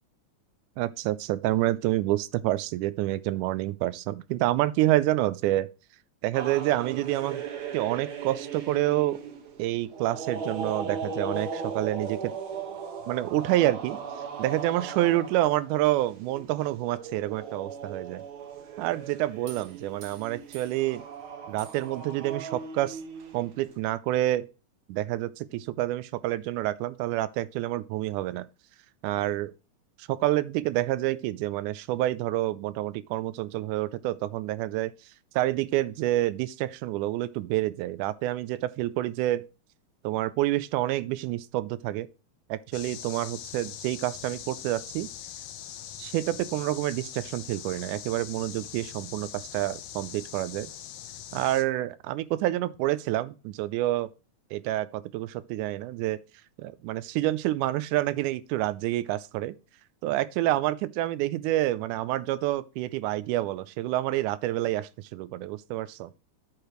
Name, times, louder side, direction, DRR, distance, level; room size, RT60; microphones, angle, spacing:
voice 1, 0.8-5.7 6.2-7.4 7.7-9.2 9.6-12.3 13.1-14.0 14.4-18.2 18.8-21.0 21.5-23.0 23.3-24.5 24.9-28.5 29.0-29.5 30.0-34.9 35.4-39.4 40.0-42.1 42.5-45.1 46.0-50.7 51.3-54.1 54.5-56.2 56.6-59.6 60.0-66.1, right 15 dB, 85° right, 2.0 m, -28 dB
sound 1, 6.3-23.7, right 6 dB, 65° right, 1.4 m, -38 dB
sound 2, 42.7-51.6, left 10 dB, 75° left, 1.5 m, -42 dB
13.0 x 4.9 x 3.1 m
omnidirectional pair, 3.5 m